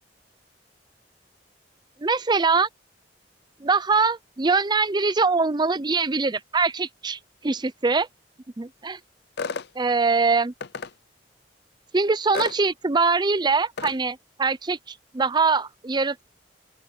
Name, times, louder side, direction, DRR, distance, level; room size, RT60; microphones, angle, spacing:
voice 1, 2.0-2.7 3.6-8.1 8.6-9.0 9.8-10.5 11.9-16.2, right 4 dB, 25° right, 0.6 m, -23 dB
sound 1, 9.4-9.7 10.6-10.9 12.3-12.6 13.8-14.0, left 5 dB, 65° left, 0.6 m, -31 dB
open air
head